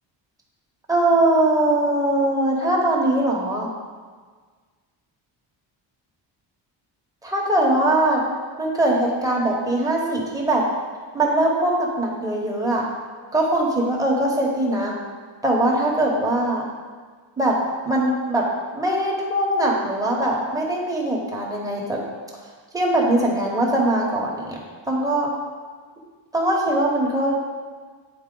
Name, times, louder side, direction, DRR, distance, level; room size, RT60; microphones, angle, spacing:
voice 1, 0.9-3.7 7.2-8.2 8.6-10.6 11.1-12.9 13.3-14.9 15.4-16.6 17.4-17.6 17.8-18.4 18.7-22.0 22.7-24.6 24.9-25.3 26.3-27.4, right 1 dB, 10° right, -3 dB, 1.0 m, -21 dB
9.5 x 4.1 x 3.8 m, 1.5 s
cardioid pair, 160°, 46 cm